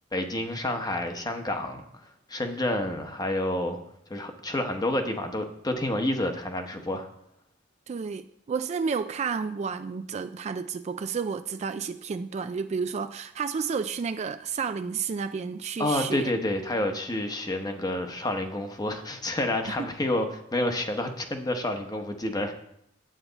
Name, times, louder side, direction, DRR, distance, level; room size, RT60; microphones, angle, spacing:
voice 1, 0.1-1.9 2.3-3.8 4.1-7.1 15.8-22.5, left 1 dB, 20° left, 5 dB, 0.9 m, -29 dB
voice 2, 7.9-16.3 19.7-19.9, right 5 dB, 35° right, 10 dB, 0.3 m, -31 dB
8.9 x 8.4 x 4.0 m, 0.75 s
head